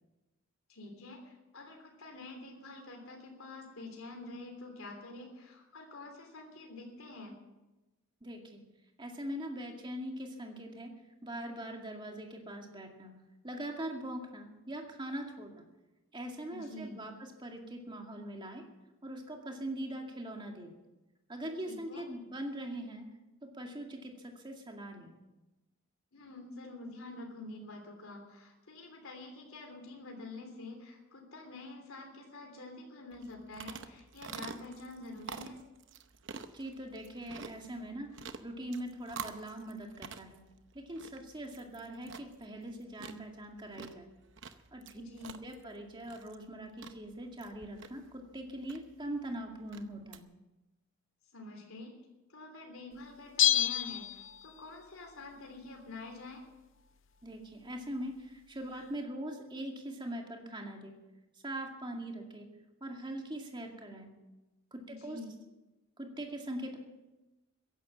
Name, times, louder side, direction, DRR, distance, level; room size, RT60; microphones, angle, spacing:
voice 1, 0.7-7.4 16.5-17.0 21.6-22.0 26.1-35.6 44.9-45.4 51.3-51.9 52.3-56.4 58.7-58.8 64.8-65.3, left 2 dB, 80° left, 2 dB, 3.3 m, -47 dB
voice 2, 8.2-8.6 9.0-11.0 11.2-13.1 13.4-15.6 16.1-18.7 19.0-20.7 21.3-23.1 23.4-25.2 36.5-38.1 38.4-40.4 40.7-44.1 44.7-45.0 45.4-50.3 57.2-60.9 61.4-62.5 62.8-64.1 64.7-65.2 66.0-66.8, right 1 dB, 20° right, 2 dB, 2.2 m, -42 dB
sound 1, 33.1-50.2, right 5 dB, 60° right, 0.8 m, -49 dB
Bell, 53.4-54.8 55.1-55.2, left 12 dB, 60° left, 0.6 m, -29 dB
15.5 x 11.0 x 7.3 m, 1.1 s
head